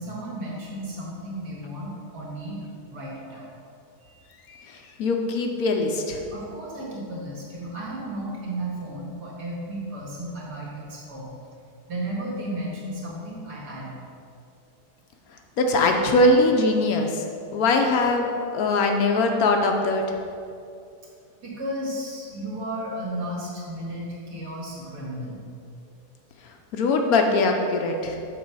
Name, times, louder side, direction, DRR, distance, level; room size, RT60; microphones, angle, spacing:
voice 1, 0.0-2.6 2.9-3.5 4.0-4.2 4.5-4.6 6.3-11.3 11.9-13.9 21.4-25.4, right 1 dB, 85° right, -5 dB, 2.2 m, -34 dB
voice 2, 4.5-6.2 15.6-17.2 17.5-20.0 26.4-28.2, left 2 dB, 70° left, 3 dB, 1.1 m, -22 dB
6.2 x 4.1 x 6.1 m, 2.4 s
omnidirectional pair, 1.7 m